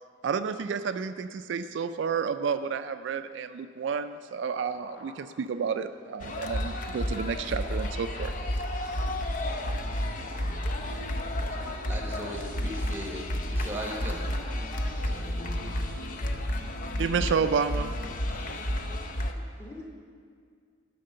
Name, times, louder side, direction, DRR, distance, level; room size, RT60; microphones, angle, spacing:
voice 1, 0.2-8.3 17.0-17.9, right 6 dB, 70° right, 10 dB, 0.3 m, -30 dB
sound 1, 4.1-16.5, left 2 dB, 65° left, 1.3 m, -50 dB
sound 2, 6.2-19.3, left 1 dB, 45° left, 0.6 m, -31 dB
voice 2, 11.9-13.2 13.5-14.2 15.1-15.6, equal, 10° right, 0 dB, 1.2 m, -38 dB
voice 3, 14.3-14.8 15.2-16.4 19.3-19.9, left 1 dB, 15° left, -3 dB, 1.6 m, -50 dB
11.5 x 5.9 x 6.6 m, 2.1 s
head